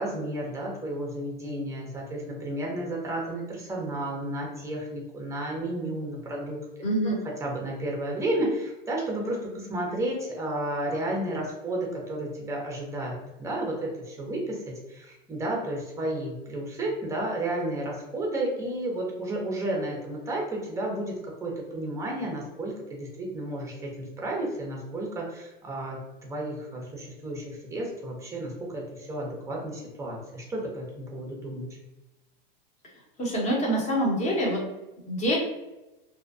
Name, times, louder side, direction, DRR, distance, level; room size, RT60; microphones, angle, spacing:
voice 1, 0.0-6.6 7.0-31.7, right 1 dB, 10° right, -1 dB, 0.6 m, -32 dB
voice 2, 6.8-7.2 33.2-34.6 35.1-35.4, right 1 dB, 25° left, -3 dB, 0.9 m, -25 dB
2.6 x 2.1 x 2.4 m, 1.0 s
hypercardioid pair, 120°, 29 cm